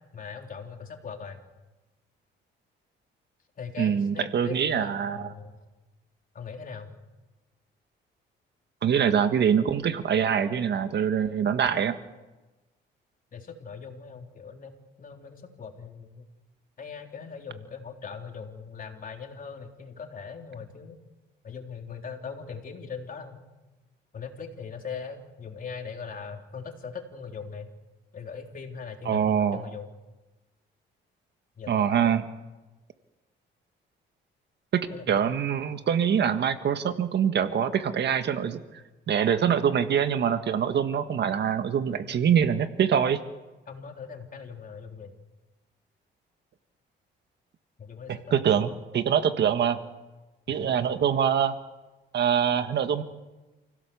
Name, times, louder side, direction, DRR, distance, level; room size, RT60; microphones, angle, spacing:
voice 1, 0.1-1.4 3.6-5.6 6.3-6.9 13.3-14.7 15.0-16.3 16.8-21.0 21.4-23.4 24.1-27.7 28.1-29.9 31.6-32.1 34.9-35.4 43.7-45.1 47.8-48.7 50.5-51.0, left 6 dB, 45° left, 2 dB, 3.8 m, -40 dB
voice 2, 3.8-5.3 8.8-12.0 29.0-29.6 31.7-32.2 34.7-38.6 39.1-43.2 48.1-49.8 50.5-51.5 52.1-53.0, right 8 dB, 60° right, 9 dB, 1.6 m, -24 dB
28.5 x 17.0 x 7.1 m, 1.1 s
cardioid pair, 90°, 20 cm